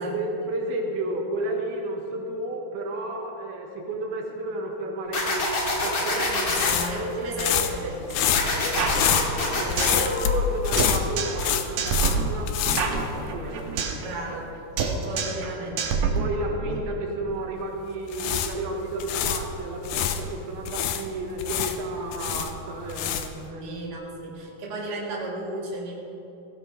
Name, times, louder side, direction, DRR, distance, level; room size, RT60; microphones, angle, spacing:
voice 1, 0.0-6.4 9.5-13.8 16.2-23.8, right 2 dB, 85° right, 1 dB, 3.4 m, -32 dB
sound 1, 5.1-6.7 8.3-9.9, left 2 dB, 45° left, 2.0 m, -26 dB
sound 2, 5.6-13.7 14.0-14.1 17.9-20.2 20.7-23.5, left 9 dB, 90° left, 1.7 m, -27 dB
voice 2, 6.1-10.3 14.0-14.6 14.8-16.1 23.6-25.9, right 2 dB, 35° right, -3 dB, 2.1 m, -34 dB
sound 3, 8.8-10.1 10.3-10.4 10.8-11.5 11.8-14.1 14.3-14.5 14.8-15.5 15.8-16.8, right 5 dB, 65° right, 2.0 m, -27 dB
17.5 x 16.5 x 3.4 m, 2.9 s
omnidirectional pair, 4.4 m